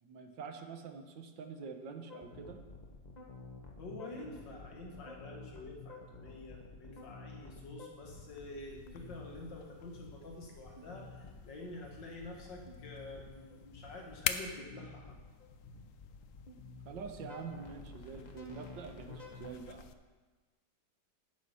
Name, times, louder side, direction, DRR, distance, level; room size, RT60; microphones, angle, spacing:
voice 1, 0.0-2.6 16.9-19.9, right 5 dB, 85° right, 6 dB, 1.7 m, -46 dB
sound 1, 2.1-19.5, left 3 dB, 25° left, 1.2 m, -51 dB
voice 2, 3.8-15.2, left 2 dB, 80° left, -1 dB, 2.5 m, -48 dB
sound 2, 8.0-19.9, left 9 dB, 65° left, 0.8 m, -46 dB
10.5 x 9.2 x 5.6 m, 1.3 s
omnidirectional pair, 1.9 m